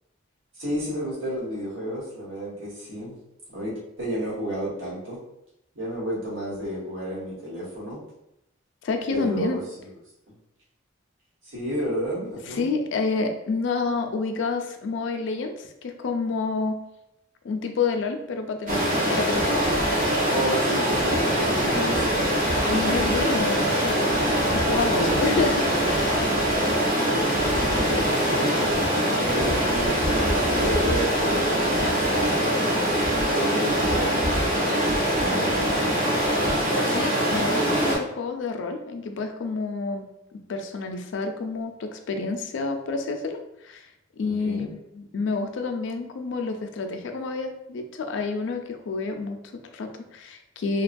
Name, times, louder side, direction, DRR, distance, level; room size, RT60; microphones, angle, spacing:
voice 1, 0.5-3.2 3.5-5.2 5.7-8.0 9.1-9.9 11.4-12.6 20.2-22.3 24.1-24.5 24.8-25.7 26.5-28.7 29.1-34.3 35.0-36.0 44.2-44.7, equal, 80° right, -7 dB, 1.2 m, -31 dB
voice 2, 8.8-9.6 12.5-16.8 17.4-18.8 19.1-19.7 22.7-26.1 36.7-40.1 40.5-43.9 44.2-50.8, left 4 dB, 65° left, 6 dB, 0.4 m, -29 dB
Stream, 18.7-38.0, equal, 45° right, 0.8 m, -23 dB
2.8 x 2.2 x 2.5 m, 0.84 s
head